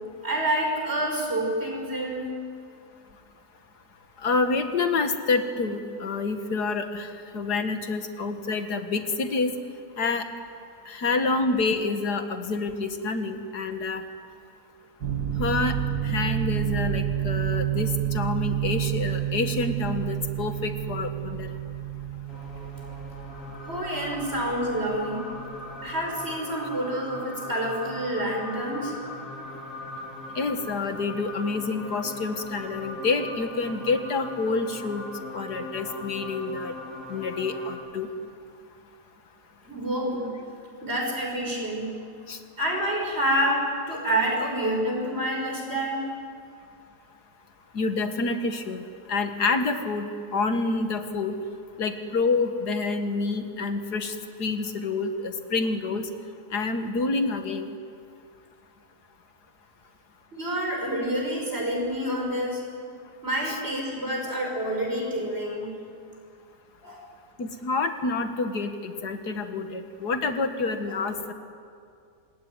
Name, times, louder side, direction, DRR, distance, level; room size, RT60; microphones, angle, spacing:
voice 1, 0.2-2.3 23.7-25.2 25.8-28.9 39.6-40.3 40.8-41.9 42.6-46.0 60.3-62.6 63.2-65.7 66.8-67.0 70.9-71.0, right 1 dB, 40° right, 0 dB, 6.7 m, -28 dB
voice 2, 4.2-9.5 10.0-10.3 10.9-14.0 15.4-15.7 16.0-21.5 30.4-35.0 35.3-36.7 37.1-38.1 42.3-42.4 47.7-48.8 49.1-51.3 51.8-56.1 56.5-57.7 67.4-71.3, left 3 dB, 85° left, 7 dB, 2.2 m, -28 dB
sound 1, 15.0-26.3, right 12 dB, 80° right, 2.1 m, -30 dB
sound 2, 22.3-37.8, left 1 dB, 55° left, 4.5 m, -40 dB
26.0 x 21.0 x 9.5 m, 2.4 s
omnidirectional pair, 1.7 m